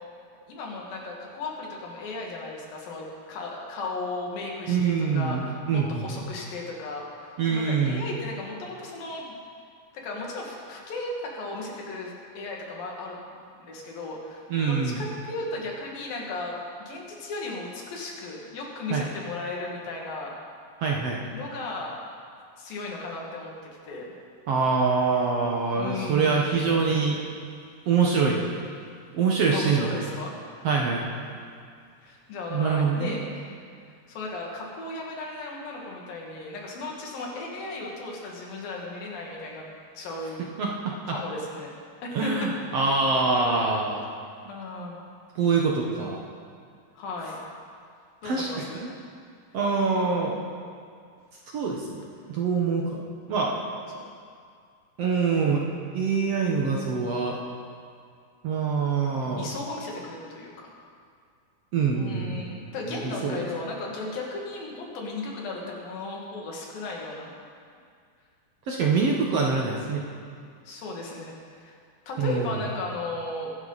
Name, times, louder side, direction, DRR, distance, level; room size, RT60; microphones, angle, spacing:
voice 1, 0.5-9.2 9.9-20.3 21.3-22.0 22.6-23.5 23.8-24.1 25.7-26.7 29.5-30.3 32.0-33.5 34.1-39.6 40.0-40.4 41.1-41.7 42.0-42.8 44.5-45.0 47.0-47.4 48.2-48.8 53.9-54.0 59.2-60.8 61.9-67.4 70.7-71.8 72.1-73.5, left 2 dB, 80° left, -2 dB, 3.9 m, -35 dB
voice 2, 4.7-6.2 7.4-8.0 14.5-15.0 18.9-19.1 20.8-21.2 24.5-27.2 27.9-28.4 29.1-30.1 30.6-31.1 32.5-33.2 40.6-41.2 42.1-44.0 45.4-46.2 48.2-48.5 48.8-48.9 49.5-50.4 51.5-52.0 52.3-53.0 53.3-53.6 55.0-55.7 55.9-57.4 58.4-59.5 61.7-62.6 62.9-63.5 68.7-70.0 72.2-72.5, right 5 dB, 60° right, -1 dB, 1.8 m, -25 dB
23.5 x 11.0 x 4.1 m, 2.2 s
omnidirectional pair, 4.0 m